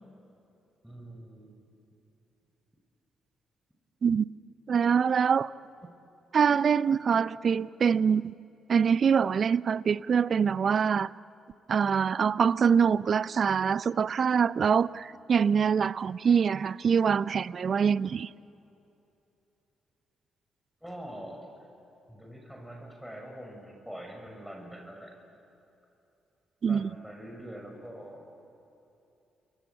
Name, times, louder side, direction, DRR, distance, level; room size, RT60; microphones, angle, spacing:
voice 1, 0.8-1.6 20.8-21.5 22.1-25.1 26.6-28.3, right 1 dB, ahead, 1 dB, 6.6 m, -44 dB
voice 2, 4.7-5.5 6.3-8.3 8.7-11.1 11.7-18.3 26.6-26.9, right 6 dB, 55° right, 19 dB, 0.6 m, -24 dB
30.0 x 23.0 x 8.7 m, 2.9 s
hypercardioid pair, 45°, 0 cm